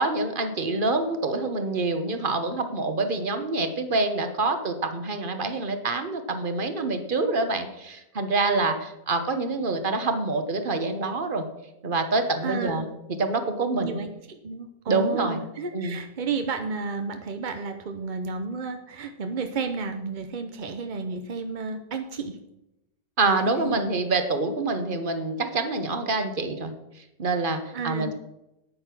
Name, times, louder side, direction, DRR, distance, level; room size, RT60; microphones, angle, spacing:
voice 1, 0.0-11.4 11.8-12.9 13.2-14.0 14.9-15.4 15.7-16.0 23.2-26.7 27.2-28.2, right 3 dB, 35° right, 8 dB, 1.1 m, -26 dB
voice 2, 12.4-12.9 13.8-22.4 23.5-23.8 27.7-28.1, right 4 dB, 55° right, 6 dB, 0.5 m, -32 dB
9.4 x 8.8 x 6.0 m, 0.90 s
omnidirectional pair, 1.9 m